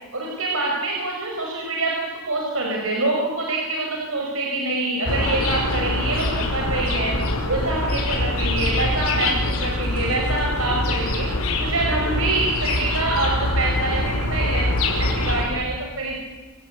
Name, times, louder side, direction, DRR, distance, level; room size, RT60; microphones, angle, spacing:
voice 1, 0.1-7.1 7.5-11.3 11.6-14.7 15.0-16.2, right 2 dB, 70° right, -1 dB, 5.3 m, -25 dB
sound 1, 5.1-15.4, left 1 dB, 75° left, 5.6 m, -24 dB
27.5 x 18.5 x 8.2 m, 1.3 s
head